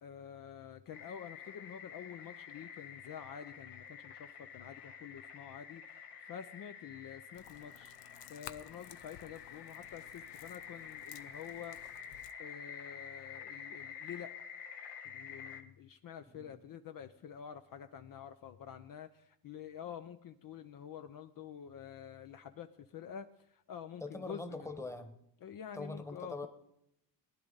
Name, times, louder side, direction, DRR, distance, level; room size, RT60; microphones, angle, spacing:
voice 1, 0.0-14.3 15.0-24.7 25.4-26.5, left 8 dB, 50° left, 8 dB, 0.7 m, -48 dB
sound 1, 0.9-15.6, left 7 dB, 65° left, 1.5 m, -49 dB
sound 2, 7.3-12.3, left 12 dB, 80° left, 0.8 m, -55 dB
voice 2, 24.0-25.2 25.7-26.5, left 2 dB, 5° left, 7 dB, 1.3 m, -43 dB
19.0 x 10.5 x 4.0 m, 0.80 s
cardioid pair, 100°, 42 cm